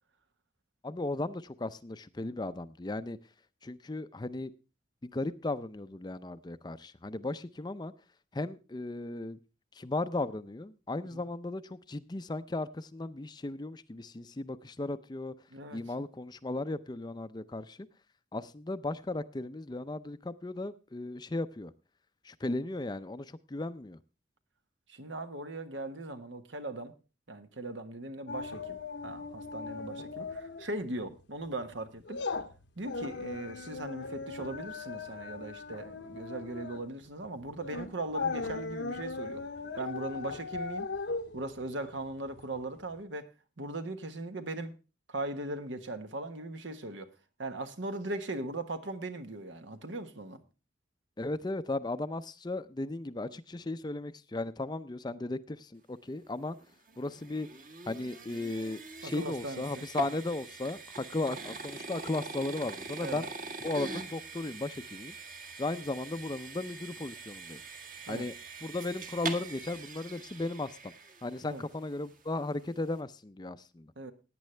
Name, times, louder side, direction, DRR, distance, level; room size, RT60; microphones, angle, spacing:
voice 1, 0.8-3.2 3.6-4.5 5.0-7.9 8.3-9.4 9.7-15.3 15.7-17.9 18.3-21.7 22.2-24.0 51.2-56.6 57.0-57.5 57.9-63.3 63.6-65.1 65.6-67.6 68.1-68.3 68.6-70.9 71.2-73.9, left 2 dB, 20° left, 0.5 m, -36 dB
voice 2, 24.9-26.9 27.3-32.2 32.8-39.4 39.8-40.9 41.3-43.3 43.6-44.7 45.1-47.1 47.4-50.4 59.0-60.0 63.0-63.3 68.1-68.3 71.4-71.6 74.0-74.1, right 2 dB, 75° right, 1.4 m, -39 dB
sound 1, 28.3-30.7 31.0-31.2 31.6-42.6 42.9-43.0, left 4 dB, 70° left, 0.8 m, -38 dB
sound 2, 56.5-71.7, right 3 dB, 45° right, 1.5 m, -43 dB
17.0 x 9.4 x 3.3 m
head